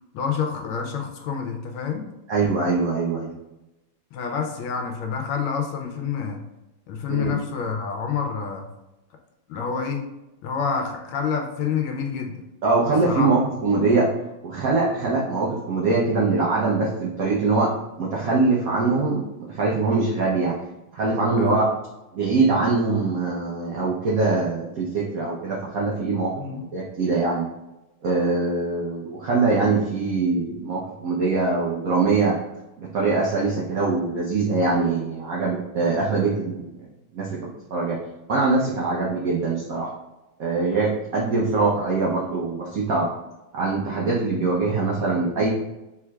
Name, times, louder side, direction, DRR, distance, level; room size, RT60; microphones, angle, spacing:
voice 1, 0.1-2.1 4.1-6.4 6.9-8.6 9.5-10.0 10.4-12.3 13.1-13.3 21.4-21.6 26.4-26.6, left 6 dB, 75° left, 3 dB, 1.4 m, -28 dB
voice 2, 2.3-3.3 7.1-7.4 12.6-14.1 14.4-17.7 18.0-20.6 20.9-21.6 22.1-27.5 28.0-32.4 32.8-36.7 37.1-37.4 37.7-38.0 38.3-39.9 40.4-43.1 43.5-45.5, right 3 dB, 80° right, -3 dB, 0.7 m, -23 dB
4.6 x 3.7 x 2.3 m, 0.97 s
omnidirectional pair, 2.4 m